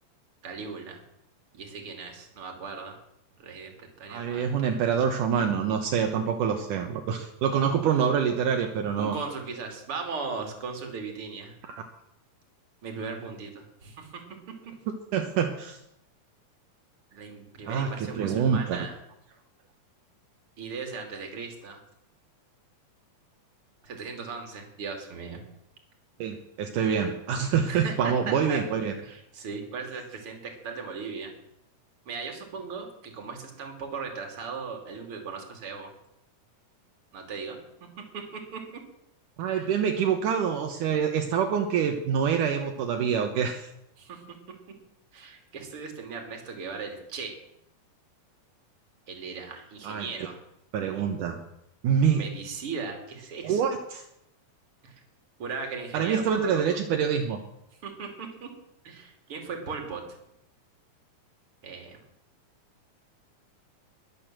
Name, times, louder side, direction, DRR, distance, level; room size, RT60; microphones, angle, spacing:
voice 1, 0.4-1.0 1.5-3.0 3.4-4.4 9.0-11.5 12.8-14.2 17.1-19.0 20.6-21.8 23.8-25.4 27.7-28.6 29.0-31.3 32.1-35.9 37.1-37.6 38.1-38.8 39.5-39.7 44.0-44.2 45.1-47.3 49.1-50.4 52.0-53.6 54.8-54.9 55.4-56.8 57.8-58.5 58.8-60.2 61.6-62.0, right 5 dB, 40° right, 3 dB, 3.4 m, -38 dB
voice 2, 4.1-9.2 11.6-11.8 15.1-15.8 17.7-18.8 26.2-28.9 39.4-43.7 49.8-50.1 50.7-51.4 51.8-52.3 53.4-54.0 55.9-57.4, right 7 dB, 75° right, 4 dB, 2.6 m, -26 dB
21.5 x 8.6 x 7.5 m, 0.81 s
omnidirectional pair, 3.8 m